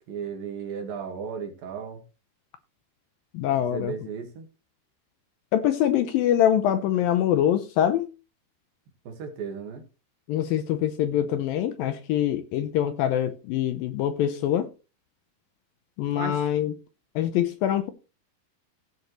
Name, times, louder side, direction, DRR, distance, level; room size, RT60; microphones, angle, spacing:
voice 1, 0.1-2.0 3.7-4.5 9.0-9.8 16.1-16.5, right 6 dB, 65° right, 3.3 m, -35 dB
voice 2, 3.3-3.9 5.5-8.1 10.3-14.7 16.0-16.7 17.2-17.9, left 10 dB, 75° left, 2.3 m, -24 dB
16.0 x 7.5 x 3.1 m
omnidirectional pair, 4.6 m